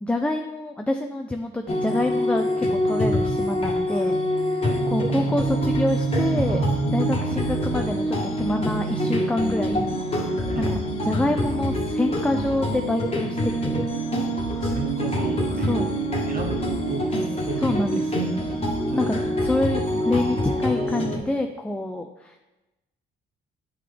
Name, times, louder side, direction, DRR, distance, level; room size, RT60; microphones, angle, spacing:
voice 1, 0.0-4.6 4.9-6.6 6.9-13.9 15.7-15.9 17.6-18.3 18.9-19.2 19.4-22.4, left 1 dB, 5° left, 5 dB, 0.4 m, -27 dB
sound 1, 1.7-21.2, equal, 30° left, 1.3 m, -25 dB
voice 2, 6.4-7.5 10.5-10.8 14.6-17.1 17.4-18.0 18.4-18.5 18.9-19.1, right 4 dB, 45° right, 2 dB, 1.2 m, -33 dB
9.4 x 3.8 x 3.4 m, 1.0 s
cardioid pair, 90°, 20 cm